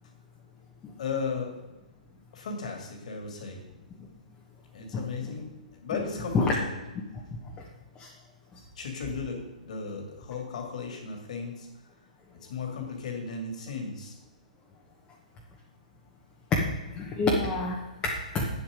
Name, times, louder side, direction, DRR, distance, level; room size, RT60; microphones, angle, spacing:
voice 1, 1.0-1.5 2.3-3.6 4.7-6.8 8.8-11.7 12.4-14.2, left 5 dB, 55° left, 2 dB, 2.6 m, -35 dB
voice 2, 16.5-18.5, left 3 dB, 20° left, -2 dB, 1.4 m, -27 dB
9.1 x 7.7 x 5.2 m, 1.1 s
figure-of-eight pair, 125°, 4 cm